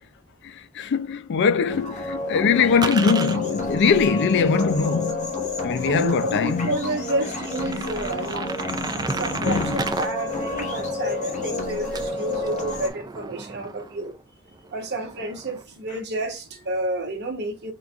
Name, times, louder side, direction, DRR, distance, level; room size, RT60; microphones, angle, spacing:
voice 1, 0.4-5.3 5.6-6.8 9.4-9.9, left 5 dB, 55° left, 0.4 m, -22 dB
sound 1, 1.4-3.4 5.0-5.1 5.6-5.7 6.2-6.3 6.6-6.7 7.1-10.1 10.4-14.2 14.5-15.6, right 4 dB, 20° right, 0.3 m, -34 dB
sound 2, 1.7-12.9, left 2 dB, 35° left, 1.0 m, -30 dB
voice 2, 5.8-14.1 14.7-17.7, right 2 dB, 50° right, 1.1 m, -30 dB
3.8 x 2.4 x 4.5 m
head